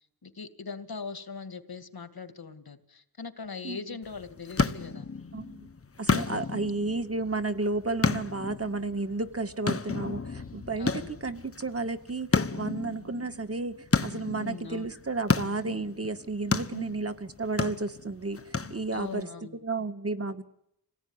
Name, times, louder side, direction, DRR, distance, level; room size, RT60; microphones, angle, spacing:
voice 1, 0.2-5.1 6.5-6.7 10.8-11.1 14.4-14.9 16.7-16.8 18.9-19.6, left 4 dB, 75° left, 9 dB, 2.3 m, -40 dB
sound 1, 4.0-19.2, left 4 dB, 35° left, 1.2 m, -32 dB
voice 2, 5.3-5.7 6.0-12.3 12.5-19.3 19.6-20.4, right 3 dB, 40° right, 8 dB, 2.0 m, -32 dB
27.0 x 18.5 x 9.8 m, 0.78 s
wide cardioid pair, 85°, 37 cm